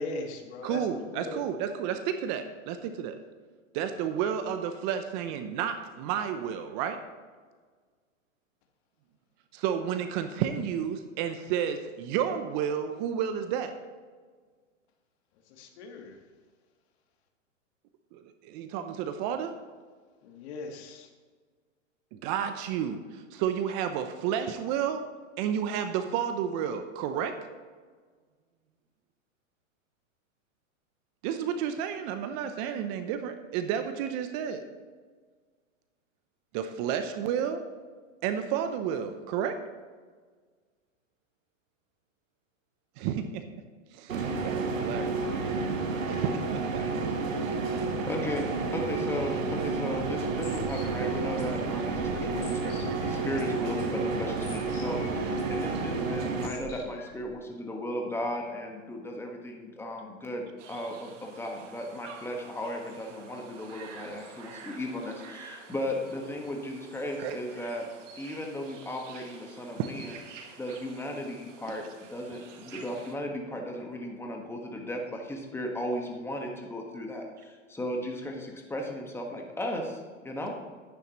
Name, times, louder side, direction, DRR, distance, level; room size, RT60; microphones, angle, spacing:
voice 1, 0.0-1.4 15.6-16.2 20.2-21.1, left 3 dB, 55° left, 4 dB, 1.6 m, -39 dB
voice 2, 0.6-3.2 3.7-7.0 9.5-13.7 18.1-19.5 22.1-25.0 25.4-27.3 31.2-34.6 36.5-37.6 38.2-39.6 43.0-43.4 43.9-45.2 46.1-46.8 67.2-67.4 69.8-70.2, right 8 dB, 35° right, 8 dB, 0.7 m, -31 dB
sound 1, 44.1-56.5, right 4 dB, 90° right, 1.3 m, -30 dB
voice 3, 47.8-48.5 48.7-67.8 68.2-70.1 70.5-80.7, left 1 dB, 5° left, 1 dB, 1.4 m, -36 dB
sound 2, 49.4-57.3, left 1 dB, 75° left, 2.8 m, -48 dB
sound 3, 60.6-73.1, right 5 dB, 70° right, 1.6 m, -49 dB
10.5 x 9.5 x 3.0 m, 1.5 s
hypercardioid pair, 125°, 38 cm